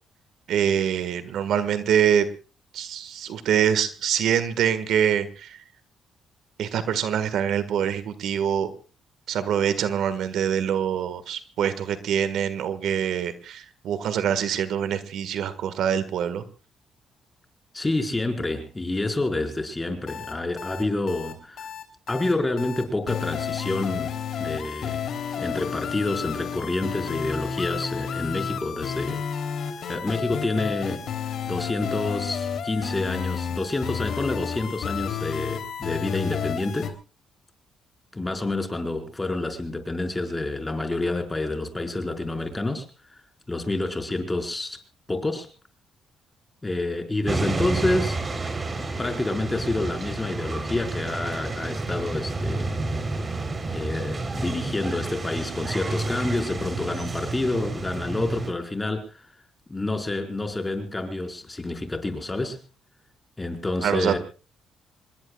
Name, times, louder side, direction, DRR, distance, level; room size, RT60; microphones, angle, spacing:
voice 1, 0.5-2.2 2.7-5.6 6.6-8.7 9.3-16.4 63.8-64.2, right 9 dB, 75° right, 12 dB, 1.7 m, -24 dB
voice 2, 17.7-21.7 22.1-25.1 25.4-29.2 29.9-31.0 31.5-36.9 38.1-42.9 43.5-44.8 45.1-45.5 46.6-48.2 48.8-52.8 53.7-59.1 59.7-62.6 63.4-64.2, left 2 dB, 15° left, 5 dB, 4.9 m, -28 dB
sound 1, 20.1-36.9, left 7 dB, 65° left, 3.3 m, -31 dB
sound 2, 47.3-58.5, right 3 dB, 30° right, 3.8 m, -30 dB
27.0 x 21.0 x 2.4 m, 0.35 s
cardioid pair, 90°, 0 cm